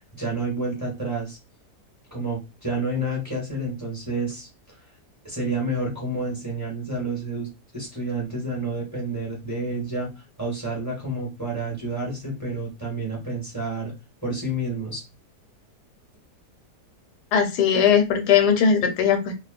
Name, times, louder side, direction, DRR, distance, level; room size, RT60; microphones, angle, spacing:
voice 1, 0.1-1.4 2.1-4.8 5.2-7.5 7.7-10.1 10.4-13.9 14.2-15.0, right 2 dB, 15° right, -4 dB, 0.9 m, -29 dB
voice 2, 17.3-19.3, left 7 dB, 80° left, 5 dB, 1.2 m, -19 dB
2.7 x 2.0 x 2.4 m, 0.26 s
omnidirectional pair, 1.8 m